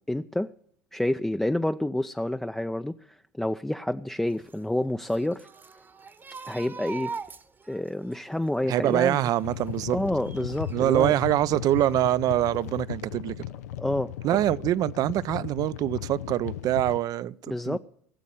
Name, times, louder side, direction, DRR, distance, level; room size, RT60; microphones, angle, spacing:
voice 1, 0.1-0.5 0.9-5.5 6.4-7.1 7.7-9.2 9.9-11.1 13.8-14.1 17.5-17.8, left 1 dB, 5° left, 0.5 m, -28 dB
sound 1, 4.3-11.2 11.6-12.5 12.7-12.9, right 5 dB, 25° right, 1.0 m, -43 dB
voice 2, 8.6-10.0 10.7-13.5 14.2-17.8, right 13 dB, 50° right, 0.5 m, -25 dB
sound 2, 9.4-17.0, left 13 dB, 85° left, 0.5 m, -36 dB
16.0 x 7.3 x 8.5 m
hypercardioid pair, 85°, 8 cm